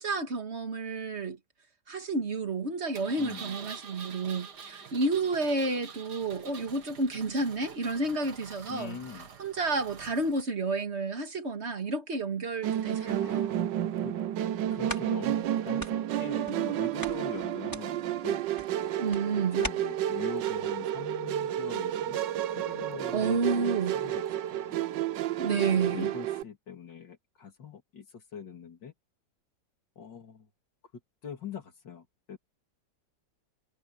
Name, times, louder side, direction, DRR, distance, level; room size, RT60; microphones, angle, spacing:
voice 1, 0.0-1.4 1.9-9.0 9.4-13.4 19.0-19.6 23.1-24.0 25.4-26.1, right 3 dB, 40° right, 2.3 m, -30 dB
Engine, 2.9-10.4, right 6 dB, 65° right, 2.3 m, -46 dB
voice 2, 3.2-3.6 8.7-9.3 13.2-13.6 14.0-14.1 14.7-18.4 19.3-22.2 22.5-24.2 24.5-24.8 25.5-28.9 30.0-30.5 31.2-32.4, left 7 dB, 90° left, 3.3 m, -43 dB
sound 1, 12.6-13.4 14.0-14.1 14.5-14.6 14.9-15.5 15.8-16.7 17.0-19.7, equal, 10° left, 5.6 m, -41 dB
Musical instrument, 12.6-26.4, right 11 dB, 85° right, 1.4 m, -31 dB
omnidirectional pair, 1.9 m